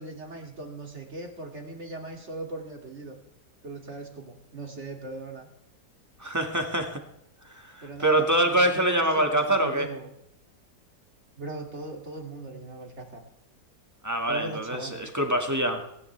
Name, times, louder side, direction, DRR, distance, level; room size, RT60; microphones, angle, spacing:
voice 1, 0.0-3.2 3.6-5.5 7.8-10.1 11.4-13.2 14.3-15.0, right 2 dB, 40° right, 2 dB, 2.8 m, -39 dB
voice 2, 6.2-7.0 7.5-9.9 14.0-15.8, right 1 dB, 10° right, 4 dB, 1.8 m, -25 dB
25.5 x 10.5 x 3.4 m, 0.81 s
omnidirectional pair, 1.8 m